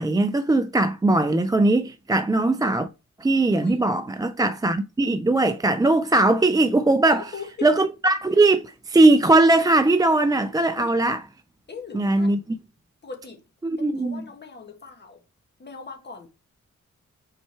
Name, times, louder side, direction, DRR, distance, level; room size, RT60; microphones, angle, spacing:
voice 1, 0.0-2.9 3.2-7.2 7.6-11.2 11.9-12.4 13.8-14.2, right 2 dB, 15° right, 0.3 m, -20 dB
voice 2, 3.5-3.9 7.1-7.7 10.8-11.0 11.7-12.3 13.0-13.4 13.8-15.2 15.6-16.3, left 5 dB, 35° left, 1.7 m, -39 dB
5.6 x 4.4 x 4.5 m
wide cardioid pair, 145°, 30 cm